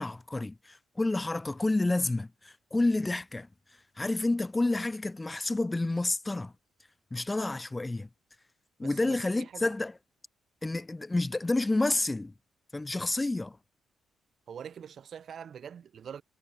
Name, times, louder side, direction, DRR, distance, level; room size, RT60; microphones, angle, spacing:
voice 1, 0.0-3.5 4.0-6.5 7.1-8.1 8.8-9.9 10.6-12.3 12.7-13.6, left 2 dB, 15° left, 0.6 m, -29 dB
voice 2, 8.8-9.7 14.5-16.2, right 8 dB, 55° right, 0.9 m, -44 dB
cardioid pair, 90°, 0 cm